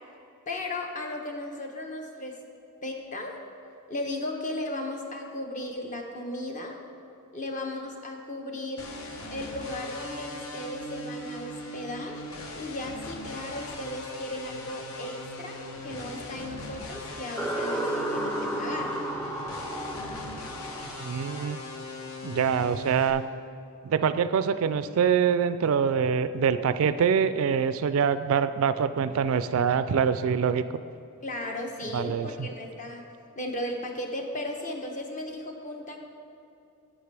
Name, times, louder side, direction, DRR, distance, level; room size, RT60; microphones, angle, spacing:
voice 1, 0.5-2.4 2.8-3.3 3.9-6.8 7.3-8.9 9.3-12.2 12.6-19.0 31.2-33.1 33.4-36.0, left 1 dB, 35° left, 2 dB, 0.9 m, -36 dB
sound 1, 8.8-23.1, left 1 dB, 65° left, 0.9 m, -40 dB
sound 2, 17.4-22.0, right 1 dB, 10° left, 0.5 m, -33 dB
voice 2, 21.0-21.6 22.2-23.2 23.8-30.7 31.9-32.5, right 7 dB, 65° right, 13 dB, 0.3 m, -25 dB
11.5 x 7.5 x 3.3 m, 2.7 s
head